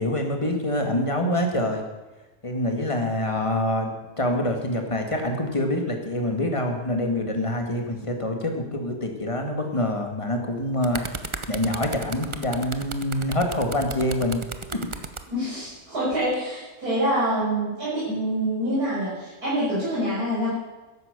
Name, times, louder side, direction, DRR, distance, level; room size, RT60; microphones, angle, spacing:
voice 1, 0.0-1.8 2.4-14.4 14.7-14.8, left 1 dB, 20° left, 3 dB, 2.0 m, -26 dB
sound 1, 10.5-15.2 16.1-16.3, right 4 dB, 30° right, 0.6 m, -34 dB
voice 2, 15.3-20.5, right 1 dB, 90° right, -10 dB, 6.7 m, -26 dB
14.0 x 10.5 x 6.8 m, 1.1 s
omnidirectional pair, 1.6 m